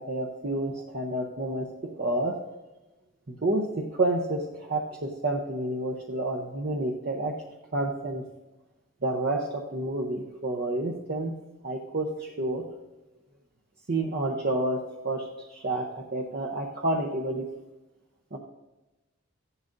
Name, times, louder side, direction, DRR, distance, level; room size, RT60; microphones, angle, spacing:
voice 1, 0.0-2.4 3.3-7.3 7.7-8.2 9.0-11.3 11.6-12.6 13.9-17.5 18.3-18.4, right 2 dB, 45° right, -1 dB, 0.8 m, -29 dB
14.5 x 11.0 x 2.6 m, 1.1 s
head